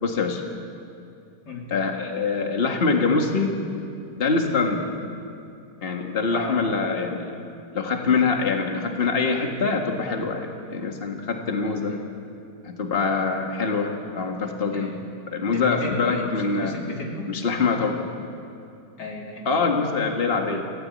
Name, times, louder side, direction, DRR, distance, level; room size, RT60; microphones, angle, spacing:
voice 1, 0.0-0.4 1.7-3.5 4.2-4.9 5.8-7.3 7.7-12.0 12.6-14.9 15.3-16.7 17.3-18.0 19.5-20.6, left 4 dB, 35° left, 3 dB, 1.9 m, -24 dB
voice 2, 6.3-6.7 11.9-12.1 14.7-15.0 15.5-17.4 19.0-19.5, left 2 dB, 85° left, 0 dB, 3.5 m, -33 dB
26.5 x 16.5 x 8.5 m, 2.6 s
omnidirectional pair, 1.8 m